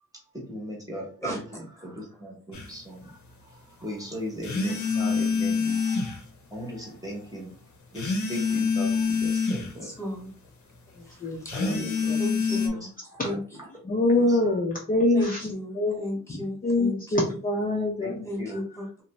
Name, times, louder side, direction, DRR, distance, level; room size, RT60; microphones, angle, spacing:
voice 1, 0.3-3.2 3.5-6.2 6.5-7.5 7.9-9.9 11.5-12.2 12.8-13.4 14.3-14.6 18.0-18.8, equal, 10° right, -3 dB, 0.8 m, -38 dB
voice 2, 1.2-1.9 9.8-10.3 11.1-11.6 12.2-12.9 13.2-13.4 15.1-17.3 18.2-19.0, equal, 10° left, -1 dB, 1.1 m, -35 dB
sound 1, 2.5-2.7 4.4-6.2 7.9-9.7 11.5-12.7, left 5 dB, 60° left, 0.7 m, -26 dB
voice 3, 11.2-12.2 12.5-12.6 13.8-16.0 16.3-18.2, left 2 dB, 25° left, -2 dB, 0.5 m, -25 dB
2.6 x 2.1 x 3.0 m, 0.41 s
wide cardioid pair, 120°, 32 cm